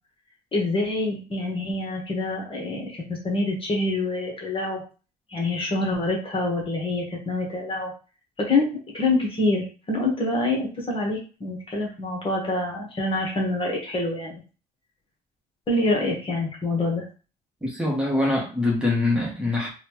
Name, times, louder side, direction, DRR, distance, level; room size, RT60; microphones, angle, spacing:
voice 1, 0.5-4.8 5.3-7.9 8.4-8.7 8.9-14.4 15.7-17.0, left 2 dB, 30° left, -1 dB, 1.2 m, -26 dB
voice 2, 17.6-19.7, left 2 dB, 5° right, -3 dB, 1.2 m, -24 dB
4.1 x 2.3 x 3.0 m, 0.35 s
cardioid pair, 110°, 17 cm